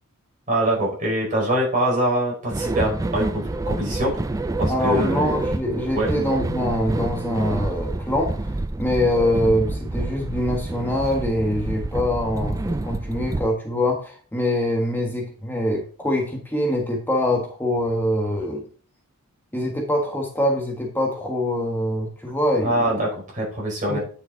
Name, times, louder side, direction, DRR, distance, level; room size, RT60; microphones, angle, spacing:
voice 1, 0.5-4.2 4.6-5.4 5.9-6.1 22.6-24.0, right 1 dB, 35° right, -3 dB, 4.6 m, -24 dB
sound 1, 2.5-13.5, right 2 dB, 15° right, 0.3 m, -28 dB
voice 2, 4.7-18.7 19.5-23.0 23.9-24.0, left 1 dB, 10° left, 0 dB, 1.4 m, -24 dB
9.5 x 5.8 x 3.8 m, 0.42 s
head